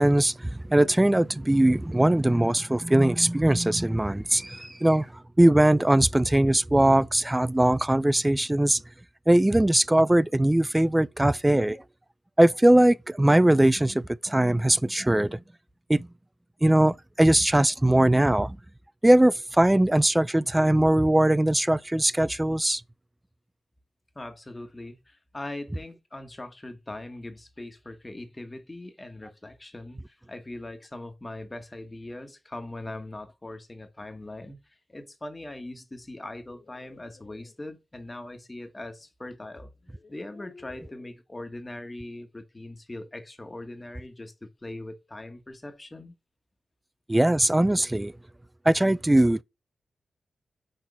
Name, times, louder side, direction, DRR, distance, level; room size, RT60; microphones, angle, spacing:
voice 1, 0.0-8.8 9.3-11.8 12.4-15.4 15.9-16.1 16.6-18.6 19.0-22.8 47.1-48.1 48.7-49.4, right 1 dB, 15° right, 0.3 m, -21 dB
voice 2, 24.1-34.6 34.9-39.7 40.1-44.3 44.6-46.1, left 2 dB, 25° left, 1.5 m, -41 dB
sound 1, 36.3-37.5 39.0-39.1 39.8-41.2, left 4 dB, 55° left, 1.2 m, -53 dB
6.3 x 4.4 x 5.4 m
cardioid pair, 65°, 0 cm